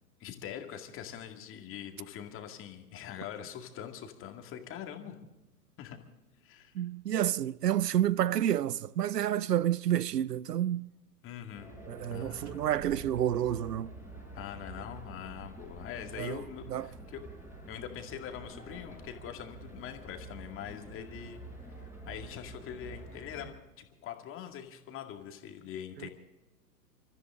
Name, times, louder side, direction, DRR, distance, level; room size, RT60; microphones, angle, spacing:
voice 1, 0.2-5.2 5.8-6.0 6.4-6.7 11.2-11.7 12.1-12.6 14.3-17.2 17.7-21.4 22.1-26.1, left 9 dB, 25° left, 2.1 m, -43 dB
voice 2, 6.7-10.9 11.9-13.9 16.2-16.4 16.7-16.9 26.0-26.1, right 11 dB, 75° right, 0.6 m, -29 dB
sound 1, 11.5-23.5, right 2 dB, 5° right, 4.9 m, -47 dB
28.5 x 14.0 x 3.7 m
figure-of-eight pair, 105°, 48 cm